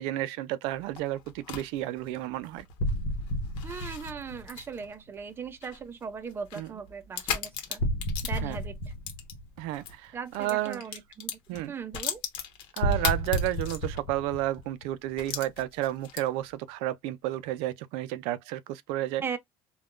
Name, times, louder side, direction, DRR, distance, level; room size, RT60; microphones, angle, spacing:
voice 1, 0.0-2.7 6.6-6.7 8.4-8.6 9.6-10.8 11.5-11.7 12.7-19.2, right 14 dB, 75° right, 0.4 m, -31 dB
sound 1, 0.7-9.9 10.3-14.2 14.5-14.6 15.2-16.5, left 8 dB, 60° left, 1.1 m, -39 dB
sound 2, 2.8-4.9 7.8-9.8 12.8-15.3, equal, 85° left, 0.8 m, -31 dB
voice 2, 3.6-7.8 8.2-8.8 10.1-11.4 11.7-12.2 19.2-19.4, right 6 dB, 25° right, 0.5 m, -38 dB
3.5 x 2.2 x 2.4 m
cardioid pair, 140°, 10 cm